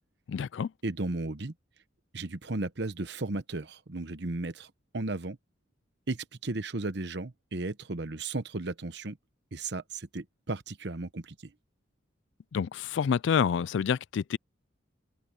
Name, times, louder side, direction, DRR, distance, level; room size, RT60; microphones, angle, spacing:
voice 1, 0.3-0.7 12.5-14.4, left 7 dB, 70° left, 0.3 m, -28 dB
voice 2, 0.8-1.5 2.1-5.4 6.1-9.2 9.5-11.5, right 2 dB, 60° right, 1.0 m, -35 dB
head